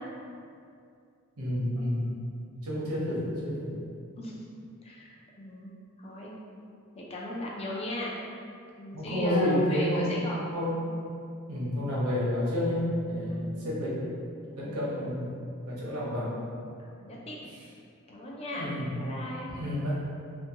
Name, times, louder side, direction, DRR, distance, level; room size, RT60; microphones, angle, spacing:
voice 1, 1.4-2.1 2.6-3.7 8.9-10.0 10.5-10.8 11.5-14.0 14.6-15.4 15.6-16.3 18.6-18.9 19.5-19.9, left 1 dB, 85° right, -7 dB, 0.7 m, -29 dB
voice 2, 4.8-5.7 6.0-6.3 6.9-8.1 8.8-10.4 13.2-13.5 14.6-14.8 16.8-17.4 18.1-18.7 19.0-19.5, left 1 dB, 25° left, -4 dB, 0.3 m, -37 dB
2.5 x 2.2 x 2.7 m, 2.4 s
head